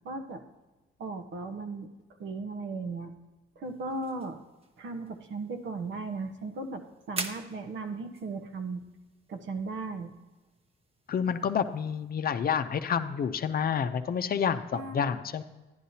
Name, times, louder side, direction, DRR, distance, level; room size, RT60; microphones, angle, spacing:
voice 1, 0.0-0.4 1.0-1.9 2.2-3.1 3.6-4.4 4.8-8.8 9.3-10.1 14.7-15.2, right 3 dB, 70° right, 6 dB, 1.1 m, -36 dB
sound 1, 3.6-12.1, right 2 dB, 30° right, 1.0 m, -46 dB
voice 2, 11.1-15.4, left 7 dB, 50° left, 9 dB, 0.6 m, -29 dB
11.5 x 10.0 x 2.8 m, 1.1 s
cardioid pair, 90°, 20 cm